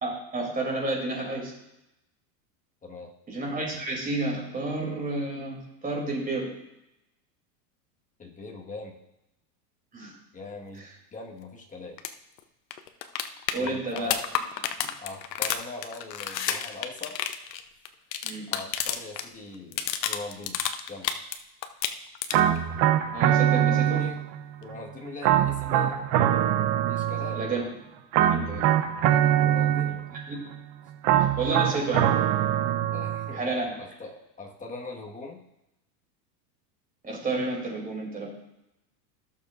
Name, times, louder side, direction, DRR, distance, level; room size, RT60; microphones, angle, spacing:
voice 1, 0.0-1.5 3.3-5.6 5.8-6.5 9.9-10.1 10.8-10.9 13.5-14.1 14.8-14.9 18.2-18.5 23.1-24.0 27.4-27.6 28.3-28.7 30.1-30.4 31.4-32.1 33.3-33.8 37.0-38.3, right 2 dB, 15° right, -2 dB, 3.0 m, -30 dB
voice 2, 2.8-3.1 8.2-9.0 10.3-10.9 11.1-12.0 13.6-14.2 15.0-17.2 18.5-20.6 20.9-21.1 23.5-24.2 24.6-26.0 26.9-27.4 29.4-30.1 32.9-33.4 33.8-35.4, left 3 dB, 15° left, -1 dB, 1.6 m, -41 dB
sound 1, 12.0-12.1 12.4-12.5 12.7-19.3 19.5-21.4 21.6-22.6 24.6-24.7, left 9 dB, 85° left, 0.9 m, -30 dB
sound 2, 22.3-24.4 25.2-27.6 28.1-30.2 31.0-33.4, right 11 dB, 50° right, 0.9 m, -23 dB
16.0 x 6.7 x 2.6 m, 0.89 s
supercardioid pair, 120°, 49 cm